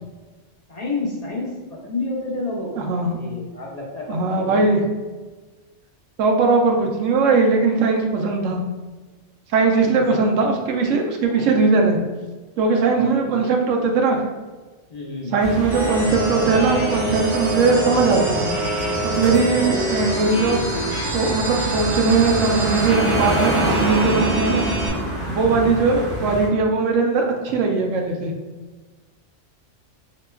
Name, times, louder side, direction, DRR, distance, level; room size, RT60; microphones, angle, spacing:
voice 1, 0.7-4.6 9.7-10.0 11.2-11.6 12.9-13.4 14.9-15.3 19.5-19.8 25.3-25.7, left 2 dB, 40° left, -4 dB, 0.7 m, -31 dB
voice 2, 2.8-3.2 4.1-4.8 6.2-8.6 9.5-12.0 12.6-14.2 15.3-18.5 19.0-20.6 21.0-24.7 25.3-28.3, right 4 dB, 85° right, 2 dB, 1.0 m, -19 dB
sound 1, 15.4-26.5, right 1 dB, 30° right, 1.6 m, -26 dB
sound 2, 15.7-24.9, right 1 dB, 50° right, 1.8 m, -27 dB
4.4 x 2.9 x 2.2 m, 1.3 s
omnidirectional pair, 1.3 m